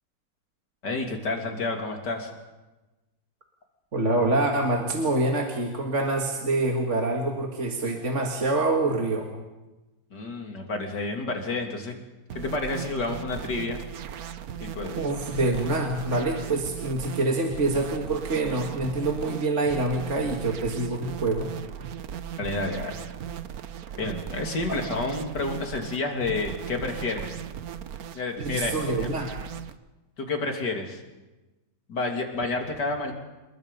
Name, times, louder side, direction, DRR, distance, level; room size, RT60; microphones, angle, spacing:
voice 1, 0.8-2.3 10.1-11.9 12.3-13.8 14.6-15.0 22.4-23.0 24.0-27.4 28.1-29.1 30.2-31.0 31.9-33.1, left 3 dB, 60° left, 3 dB, 3.4 m, -30 dB
voice 2, 3.9-9.3 15.0-21.5 24.7-24.8 28.4-29.3, right 2 dB, 40° right, 1 dB, 2.2 m, -26 dB
sound 1, 12.3-29.8, right 9 dB, 60° right, 1.2 m, -37 dB
28.5 x 22.0 x 5.4 m, 1.1 s
omnidirectional pair, 2.0 m